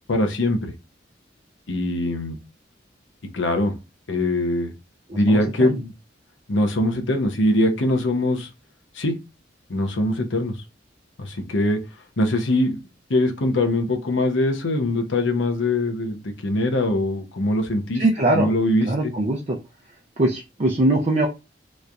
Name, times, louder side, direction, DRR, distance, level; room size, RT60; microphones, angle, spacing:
voice 1, 0.1-0.7 1.7-2.4 3.3-3.8 4.1-4.7 5.1-5.9 6.5-8.5 8.9-9.2 9.7-10.5 11.2-11.8 12.2-12.8 13.1-18.0 18.3-19.1, left 1 dB, 90° left, 0.8 m, -22 dB
voice 2, 5.1-5.4 5.7-5.8 17.9-18.5 18.8-19.6 20.2-21.3, right 1 dB, 40° right, 0.6 m, -21 dB
3.1 x 2.6 x 3.4 m
head